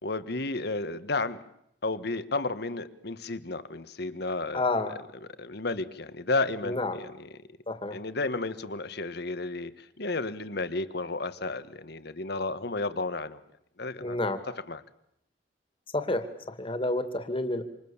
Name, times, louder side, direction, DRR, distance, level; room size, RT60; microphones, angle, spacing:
voice 1, 0.0-1.4 1.8-4.6 5.4-7.3 7.9-13.4 13.8-14.2 14.7-14.8, left 3 dB, 65° left, 12 dB, 1.5 m, -32 dB
voice 2, 4.5-4.9 6.6-7.0 7.7-8.0 14.0-14.4 15.9-17.7, left 2 dB, 30° left, 9 dB, 2.3 m, -29 dB
27.5 x 26.5 x 7.3 m, 0.77 s
head